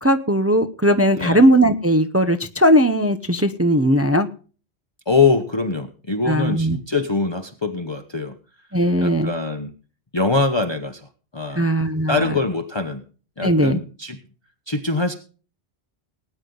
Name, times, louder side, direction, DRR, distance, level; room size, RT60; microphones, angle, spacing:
voice 1, 0.0-4.3 6.3-6.8 8.7-9.3 11.6-12.3 13.4-13.8, equal, 15° right, 7 dB, 0.6 m, -18 dB
voice 2, 5.1-8.3 9.0-9.7 10.1-11.7 12.1-13.0 13.4-14.2 14.7-15.1, left 3 dB, 25° left, 6 dB, 1.0 m, -23 dB
19.5 x 9.4 x 3.9 m, 0.38 s
omnidirectional pair, 1.1 m